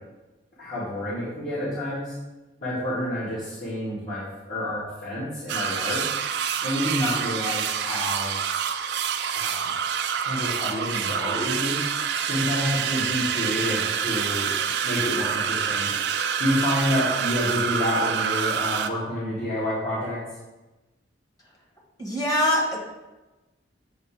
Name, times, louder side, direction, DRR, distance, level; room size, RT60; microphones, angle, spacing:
voice 1, 0.6-2.1 2.6-6.0 6.6-8.3 9.3-9.7 10.2-11.8 12.2-15.9 16.4-20.2, left 1 dB, 45° left, -12 dB, 1.9 m, -28 dB
sound 1, 5.5-18.9, right 7 dB, 65° right, 0.4 m, -27 dB
voice 2, 22.0-22.8, left 1 dB, 20° left, -3 dB, 1.5 m, -23 dB
7.8 x 2.8 x 4.8 m, 1.1 s
head